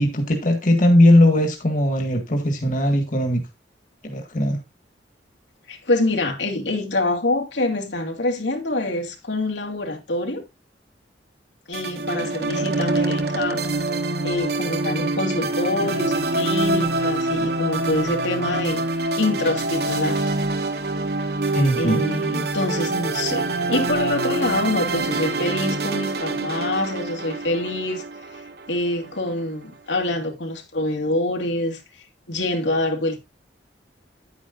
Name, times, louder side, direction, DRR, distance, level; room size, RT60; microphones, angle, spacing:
voice 1, 0.0-3.4 4.0-4.6 21.5-22.0, left 1 dB, 50° left, 1.8 m, -18 dB
voice 2, 5.7-10.4 11.7-13.6 14.2-18.8 19.2-20.2 21.7-28.0 28.7-31.8 32.3-33.2, left 2 dB, 90° left, 2.6 m, -25 dB
sound 1, 11.7-29.1, right 2 dB, 60° right, 1.2 m, -25 dB
10.0 x 9.5 x 2.6 m
head